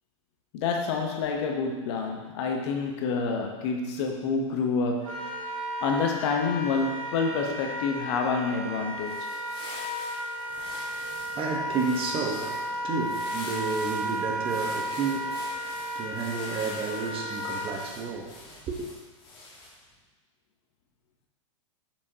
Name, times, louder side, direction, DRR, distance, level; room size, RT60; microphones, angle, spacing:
voice 1, 0.5-5.5 5.8-9.3, left 4 dB, 55° left, 3 dB, 1.0 m, -28 dB
Wind instrument woodwind instrument, 5.0-17.8, equal, 80° right, 1.6 m, -34 dB
sound 1, 8.9-19.9, left 2 dB, 30° left, 1.6 m, -45 dB
voice 2, 10.5-18.9, right 4 dB, 30° right, 1 dB, 1.1 m, -32 dB
6.7 x 5.2 x 2.8 m, 1.2 s
hypercardioid pair, 105°, 17 cm